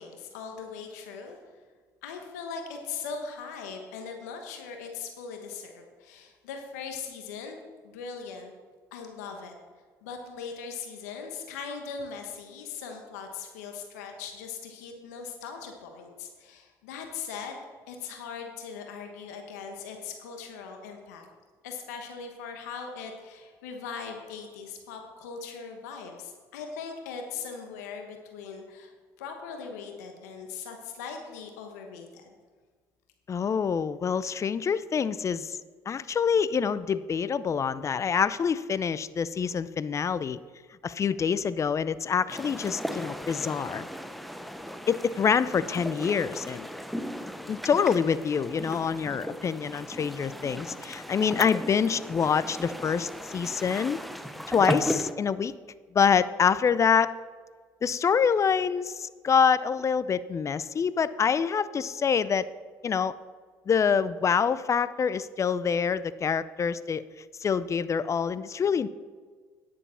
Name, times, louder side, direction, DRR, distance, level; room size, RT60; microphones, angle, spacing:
voice 1, 0.0-1.4 2.0-7.6 7.8-8.5 8.9-9.5 10.0-17.6 17.9-21.3 21.6-28.9 29.2-32.2, left 5 dB, 90° left, 4 dB, 1.2 m, -40 dB
voice 2, 33.3-35.6 35.9-40.4 40.8-43.9 44.9-46.7 47.5-54.0 54.5-55.5 55.9-57.1 57.8-62.5 62.8-63.1 63.7-67.0 67.4-68.9, left 6 dB, 35° left, 16 dB, 0.5 m, -26 dB
Sea (lapping), 42.3-55.1, equal, ahead, 0.8 m, -36 dB
10.0 x 7.1 x 5.6 m, 1.5 s
hypercardioid pair, 65°, 9 cm